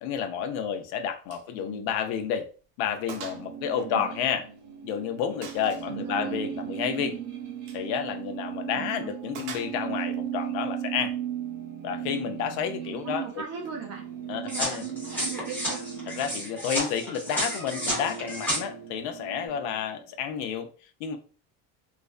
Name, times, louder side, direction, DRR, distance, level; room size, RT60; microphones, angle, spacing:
voice 1, 0.0-2.5 2.8-4.5 4.8-7.2 7.7-11.1 11.8-13.4 14.3-14.9 16.2-20.7 21.0-21.2, left 8 dB, 70° left, 0.5 m, -30 dB
Gunshot gunfire, 1.3-1.5 1.8-2.0 2.4-2.5 3.1-3.5 3.8-4.7 5.4-5.9 7.6-7.9 9.3-10.1, right 6 dB, 85° right, 0.6 m, -42 dB
voice 2, 1.6-1.9 3.8-4.1 5.9-6.4 8.7-9.2 12.9-14.1 14.4-15.8, right 7 dB, 40° right, 0.4 m, -38 dB
sound 1, 3.1-20.3, right 9 dB, 25° right, 0.8 m, -37 dB
sound 2, 14.5-18.6, equal, 5° left, 0.6 m, -31 dB
2.4 x 2.2 x 2.3 m
cardioid pair, 175°, 39 cm